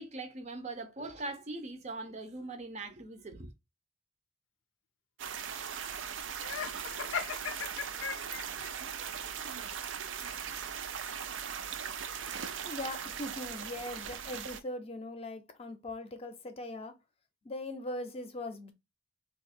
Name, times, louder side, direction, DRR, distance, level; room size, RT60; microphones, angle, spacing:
voice 1, 0.0-3.5, right 2 dB, 35° right, 0.5 m, -41 dB
sound 1, 5.2-14.6, right 7 dB, 85° right, 0.5 m, -39 dB
Laughter, 6.4-8.7, left 7 dB, 85° left, 0.5 m, -37 dB
voice 2, 12.2-17.0 17.4-18.7, left 1 dB, 30° left, 0.6 m, -40 dB
2.8 x 2.4 x 4.2 m
head